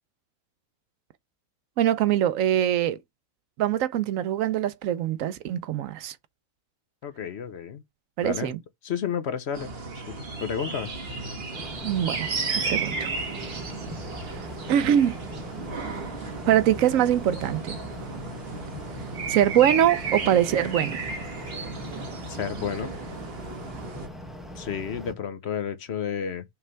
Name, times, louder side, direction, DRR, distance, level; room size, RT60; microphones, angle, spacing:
voice 1, 1.8-3.0 3.6-6.1 8.2-8.6 11.8-12.3 12.7-13.1 14.7-15.2 16.5-17.8 19.3-21.0, right 11 dB, 75° right, 1.0 m, -23 dB
voice 2, 7.0-7.8 8.2-8.5 8.8-9.7 10.4-10.9 22.3-22.9 24.6-26.4, left 7 dB, 55° left, 0.9 m, -31 dB
sound 1, 9.5-24.1, right 4 dB, 45° right, 1.5 m, -34 dB
sound 2, 11.5-25.1, equal, ahead, 1.0 m, -41 dB
5.8 x 3.3 x 5.5 m
omnidirectional pair, 1.4 m